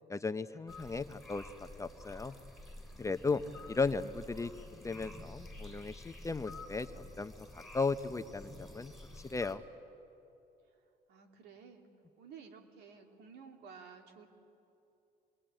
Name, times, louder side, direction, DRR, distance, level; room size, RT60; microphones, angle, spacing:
voice 1, 0.1-1.4 1.8-2.3 3.0-3.4 3.7-4.5 4.8-9.6, left 4 dB, 20° left, 10 dB, 0.7 m, -36 dB
sound 1, 0.7-9.5, left 2 dB, ahead, 3.8 m, -50 dB
voice 2, 11.1-11.9 12.2-14.3, right 6 dB, 80° right, 4 dB, 2.8 m, -53 dB
25.5 x 21.5 x 9.0 m, 2.8 s
cardioid pair, 110°, 17 cm